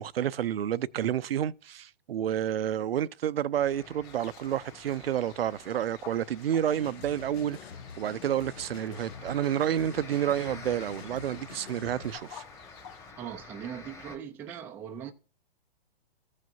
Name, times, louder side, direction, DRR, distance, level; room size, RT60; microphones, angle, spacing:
voice 1, 0.0-7.6 8.0-12.4, right 10 dB, 75° right, 0.5 m, -30 dB
sound 1, 3.5-14.2, left 3 dB, 10° left, 1.2 m, -49 dB
sound 2, 4.0-13.1, left 9 dB, 30° left, 1.7 m, -53 dB
sound 3, 6.7-12.2, left 7 dB, 90° left, 0.6 m, -47 dB
voice 2, 13.2-15.1, right 8 dB, 5° right, 0.3 m, -40 dB
15.0 x 6.4 x 2.6 m
hypercardioid pair, 125°, 30 cm